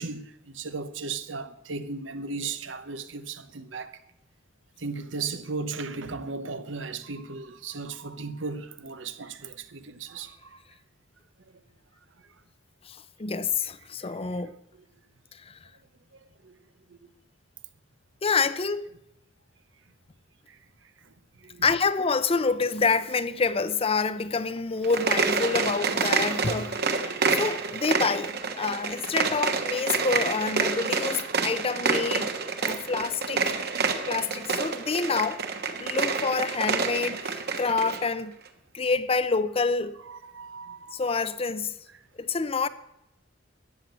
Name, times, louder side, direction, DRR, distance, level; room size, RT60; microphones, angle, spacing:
voice 1, 0.0-4.0 4.8-10.6 16.4-16.5 16.9-17.0 20.5-20.6 21.4-21.7 26.2-27.4 35.8-36.0 37.5-37.6 40.1-41.0, right 4 dB, 85° right, 1.0 m, -36 dB
voice 2, 12.9-14.5 15.4-15.6 18.2-18.9 21.6-26.9 27.3-32.3 32.6-33.6 34.1-35.4 35.8-38.3 38.7-40.0 40.9-41.7 42.2-42.7, left 4 dB, 30° left, 0.6 m, -27 dB
sound 1, 24.8-38.0, right 4 dB, 60° right, 1.4 m, -28 dB
13.5 x 8.5 x 8.1 m
head